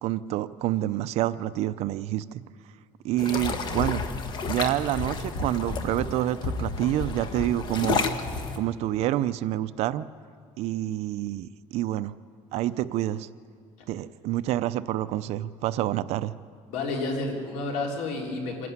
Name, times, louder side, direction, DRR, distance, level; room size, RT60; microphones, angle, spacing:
voice 1, 0.0-2.4 3.0-4.0 4.4-8.1 8.6-10.1 10.6-12.1 12.5-13.3 13.9-16.3, right 14 dB, 60° right, 14 dB, 0.6 m, -28 dB
sound 1, 3.2-8.6, left 4 dB, 40° left, 1.3 m, -31 dB
voice 2, 16.7-18.7, left 3 dB, 80° left, 0 dB, 4.0 m, -30 dB
26.5 x 11.0 x 9.6 m, 2.1 s
cardioid pair, 155°, 12 cm